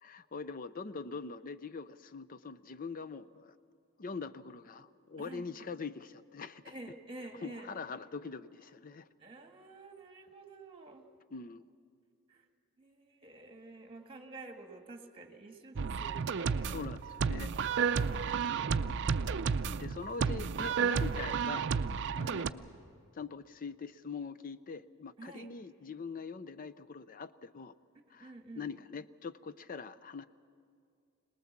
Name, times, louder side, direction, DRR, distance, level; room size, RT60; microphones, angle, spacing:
voice 1, 0.0-3.5 4.0-6.7 7.4-9.1 11.3-11.6 15.8-15.9 16.5-17.5 18.2-18.3 18.9-19.0 19.7-21.7 22.1-22.7 23.1-27.7 28.1-30.2, left 4 dB, 40° left, 14 dB, 0.5 m, -43 dB
voice 2, 5.2-5.5 6.6-7.7 9.2-11.0 12.3-12.4 12.8-16.7 22.2-22.5 25.2-25.5 28.2-28.7, right 2 dB, 25° right, 4 dB, 1.6 m, -49 dB
sound 1, 15.7-22.5, right 6 dB, 55° right, 0.5 m, -32 dB
23.0 x 19.5 x 7.3 m, 2.3 s
head